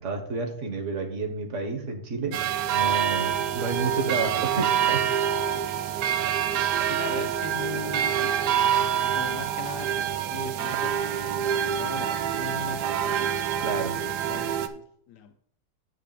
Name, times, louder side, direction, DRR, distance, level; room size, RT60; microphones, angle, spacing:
voice 1, 0.0-2.4 2.7-5.2 13.6-14.0, right 4 dB, 50° right, 3 dB, 1.5 m, -30 dB
sound 1, 2.3-14.7, right 9 dB, 90° right, 1.2 m, -26 dB
voice 2, 6.3-8.6 9.1-10.9 11.6-13.3 14.0-15.3, left 7 dB, 90° left, 6 dB, 1.2 m, -40 dB
9.4 x 3.3 x 6.7 m, 0.64 s
omnidirectional pair, 1.7 m